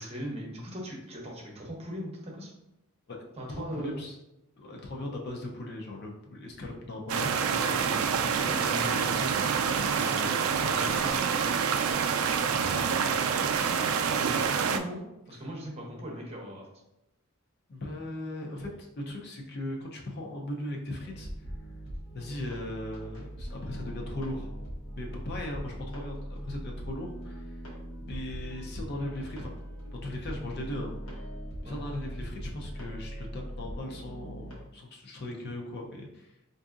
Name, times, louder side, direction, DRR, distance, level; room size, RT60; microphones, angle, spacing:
voice 1, 0.0-2.5 3.4-4.0 8.5-9.2 10.7-11.3 13.4-16.7 31.6-31.8, equal, 30° right, -1 dB, 0.8 m, -39 dB
voice 2, 3.1-4.2 4.6-11.1 11.7-13.5 17.7-21.3 22.1-24.5 25.0-27.6 28.0-29.5 30.0-31.3 31.6-36.3, left 1 dB, 50° left, 0 dB, 0.6 m, -39 dB
sound 1, 7.1-14.8, right 6 dB, 75° right, 0.3 m, -27 dB
sound 2, 21.0-34.5, equal, 85° left, 1.0 m, -40 dB
4.5 x 2.6 x 2.4 m, 0.88 s
head